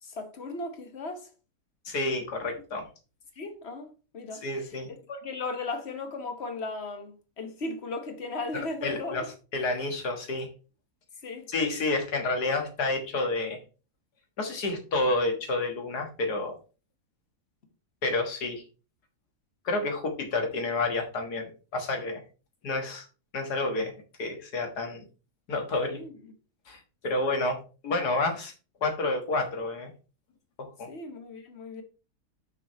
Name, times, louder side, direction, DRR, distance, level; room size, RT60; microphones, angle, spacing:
voice 1, 0.0-1.3 3.4-9.2 11.2-11.5 25.9-26.3 30.9-31.8, left 3 dB, 45° left, 1.4 m, -37 dB
voice 2, 1.9-2.8 4.4-4.9 8.5-9.2 9.5-10.5 11.5-13.6 14.4-16.6 18.0-18.6 19.7-22.2 22.6-23.1 23.3-23.9 24.2-25.0 25.5-26.0 26.7-27.6 27.8-28.5 28.8-29.9 30.6-30.9, left 2 dB, 90° left, 2.1 m, -29 dB
6.2 x 5.2 x 4.2 m
omnidirectional pair, 1.6 m